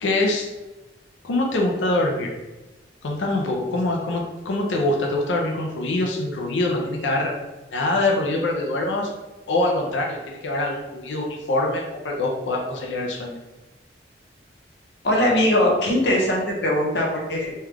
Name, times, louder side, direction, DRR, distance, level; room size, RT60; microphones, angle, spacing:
voice 1, 0.0-0.5 1.2-2.3 3.0-7.3 7.7-9.1 9.5-13.4, left 2 dB, 90° left, 0 dB, 0.5 m, -24 dB
voice 2, 15.0-17.5, left 1 dB, 70° left, -2 dB, 0.9 m, -20 dB
3.2 x 2.3 x 3.4 m, 1.1 s
head